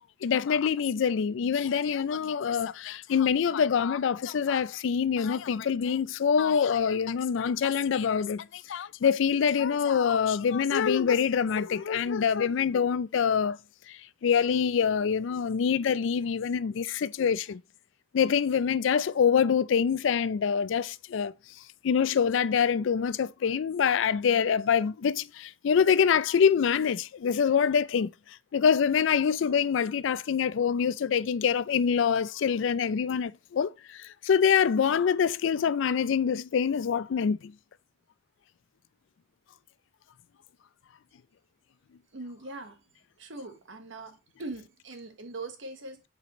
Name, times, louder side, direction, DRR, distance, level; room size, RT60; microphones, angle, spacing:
voice 1, 0.2-13.6 13.9-17.6 18.1-21.3 21.8-28.1 28.5-37.5, left 7 dB, 65° left, 0.4 m, -25 dB
voice 2, 42.1-42.8 43.2-46.0, right 2 dB, 65° right, 1.2 m, -41 dB
7.6 x 4.8 x 3.0 m
head